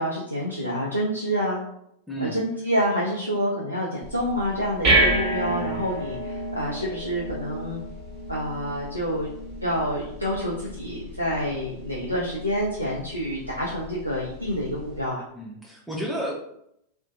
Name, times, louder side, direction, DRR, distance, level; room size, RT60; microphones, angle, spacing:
voice 1, 0.0-1.6 2.2-7.8 8.3-9.3 9.6-15.2, equal, 90° right, -6 dB, 0.4 m, -27 dB
voice 2, 2.1-2.4 5.5-5.9 15.3-16.3, right 1 dB, ahead, -3 dB, 0.5 m, -32 dB
sound 1, 4.0-15.0, right 1 dB, 40° right, 1.2 m, -30 dB
2.5 x 2.1 x 2.5 m, 0.75 s
figure-of-eight pair, 90°, 0 cm